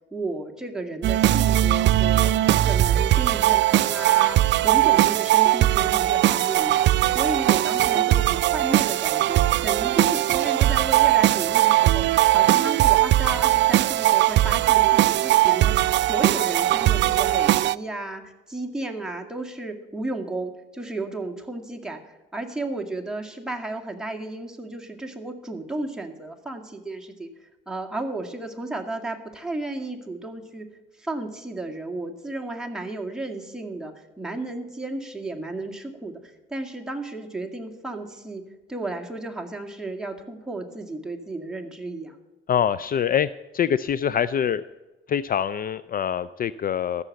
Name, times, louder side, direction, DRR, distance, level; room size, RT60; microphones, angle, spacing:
voice 1, 0.1-6.8 7.0-12.0 12.3-15.7 16.1-30.6 31.0-38.4 38.7-42.2, right 2 dB, 5° right, 1 dB, 2.1 m, -33 dB
sound 1, 1.0-17.8, right 14 dB, 65° right, 0.4 m, -20 dB
voice 2, 42.5-43.3 43.5-44.6 45.1-47.0, left 9 dB, 45° left, 16 dB, 0.4 m, -24 dB
14.5 x 6.8 x 7.7 m, 1.1 s
cardioid pair, 90°, 20 cm